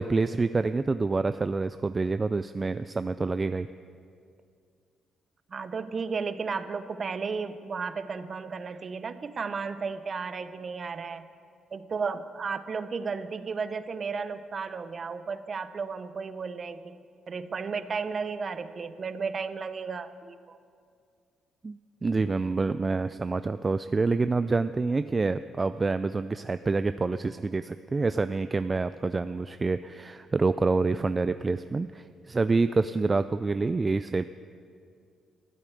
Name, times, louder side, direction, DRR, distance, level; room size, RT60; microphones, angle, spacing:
voice 1, 0.0-3.7 21.6-34.2, right 3 dB, 25° right, 12 dB, 0.3 m, -27 dB
voice 2, 5.5-11.2 11.7-17.0 17.3-20.6, right 5 dB, 45° right, 12 dB, 0.8 m, -34 dB
14.0 x 8.5 x 9.4 m, 2.3 s
cardioid pair, 90°, 0 cm